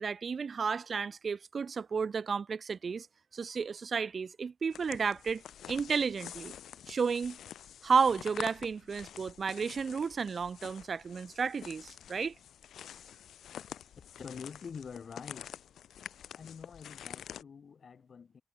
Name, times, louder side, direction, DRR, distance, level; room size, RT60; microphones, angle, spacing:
voice 1, 0.0-3.1 3.3-5.4 5.7-6.5 6.9-7.4 7.8-12.3, right 5 dB, 50° right, 0.9 m, -32 dB
sound 1, 4.7-17.4, left 10 dB, 85° left, 3.0 m, -48 dB
voice 2, 14.2-15.5 16.3-18.4, left 6 dB, 55° left, 2.4 m, -46 dB
cardioid pair, 80°, 0 cm